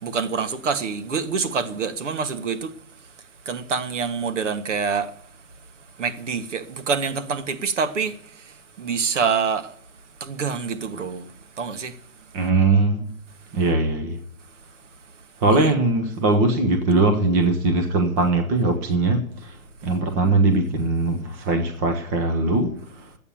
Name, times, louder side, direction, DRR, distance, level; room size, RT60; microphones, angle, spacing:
voice 1, 0.0-2.7 3.5-5.1 6.0-8.2 8.8-9.7 10.2-11.3 11.6-11.9 15.5-15.7, right 5 dB, 60° right, 1.6 m, -26 dB
voice 2, 12.3-13.1 13.5-14.2 15.4-19.6 19.8-22.7, right 2 dB, 15° right, 0.6 m, -20 dB
12.0 x 8.5 x 7.1 m
hypercardioid pair, 140°, 40 cm